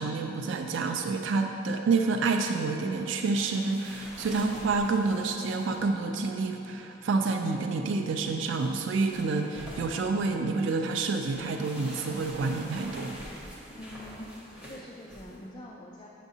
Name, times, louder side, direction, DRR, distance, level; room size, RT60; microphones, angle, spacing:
voice 1, 0.0-13.2, right 3 dB, 80° right, 4 dB, 0.4 m, -28 dB
sound 1, 3.1-6.0 8.6-10.2 10.7-15.3, equal, 10° right, 1.2 m, -46 dB
voice 2, 13.8-16.1, left 1 dB, 20° left, -2 dB, 0.4 m, -45 dB
8.1 x 6.3 x 2.7 m, 2.8 s
head